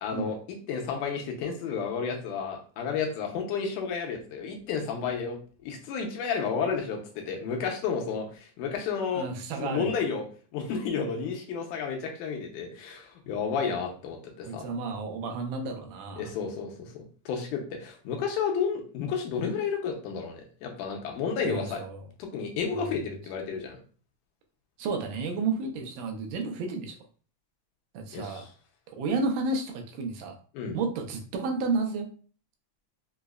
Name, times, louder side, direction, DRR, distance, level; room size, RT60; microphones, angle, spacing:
voice 1, 0.0-9.3 9.6-10.3 10.5-14.7 16.2-21.8 22.2-23.8 28.1-28.5 30.5-30.8, left 6 dB, 85° left, 2 dB, 2.1 m, -31 dB
voice 2, 9.1-9.9 14.5-16.3 21.4-22.0 22.7-23.0 24.8-27.0 27.9-28.5 28.9-30.4 30.7-32.1, right 3 dB, 85° right, 4 dB, 2.1 m, -32 dB
5.5 x 2.0 x 2.3 m, 0.40 s
omnidirectional pair, 3.6 m